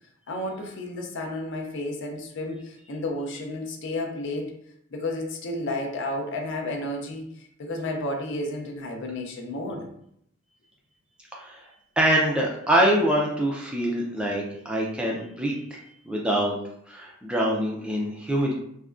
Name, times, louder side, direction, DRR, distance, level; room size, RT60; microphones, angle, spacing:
voice 1, 0.3-4.6 4.9-9.9, left 1 dB, 55° left, 2 dB, 0.5 m, -32 dB
voice 2, 11.3-11.6 12.0-15.8 16.1-16.5 16.9-18.5, right 1 dB, 5° right, -3 dB, 0.3 m, -24 dB
3.4 x 2.1 x 2.4 m, 0.72 s
head